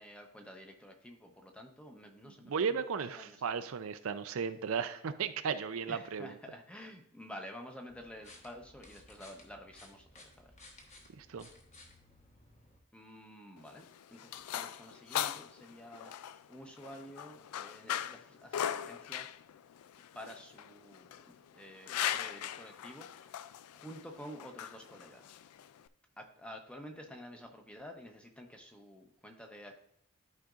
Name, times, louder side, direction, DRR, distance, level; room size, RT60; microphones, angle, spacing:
voice 1, 0.0-2.8 3.1-3.4 5.9-10.9 12.9-19.3 20.1-23.4 23.7-25.4 26.2-29.8, equal, 5° left, 3 dB, 0.8 m, -50 dB
voice 2, 2.4-6.3 11.2-11.5, right 6 dB, 70° right, 10 dB, 0.5 m, -35 dB
sound 1, 7.9-12.8, left 2 dB, 30° left, 1.2 m, -58 dB
sound 2, 13.6-25.9, left 10 dB, 90° left, 0.3 m, -40 dB
12.0 x 5.0 x 2.5 m, 0.75 s
head